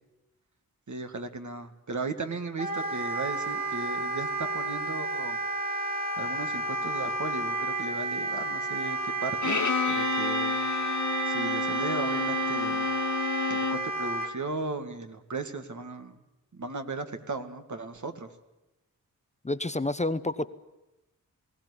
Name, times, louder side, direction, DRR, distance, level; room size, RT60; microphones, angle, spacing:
voice 1, 0.9-5.4 6.2-9.6 9.9-10.6 11.2-12.9 13.5-16.2 16.5-18.3, right 3 dB, 60° right, 7 dB, 2.1 m, -36 dB
Wind instrument woodwind instrument, 2.6-14.3, right 2 dB, 25° right, 4.0 m, -31 dB
Bowed string instrument, 9.4-13.9, left 4 dB, 55° left, 1.6 m, -30 dB
voice 2, 19.4-20.5, left 2 dB, 20° left, 12 dB, 0.9 m, -29 dB
20.5 x 17.0 x 9.9 m, 0.95 s
cardioid pair, 60°, 34 cm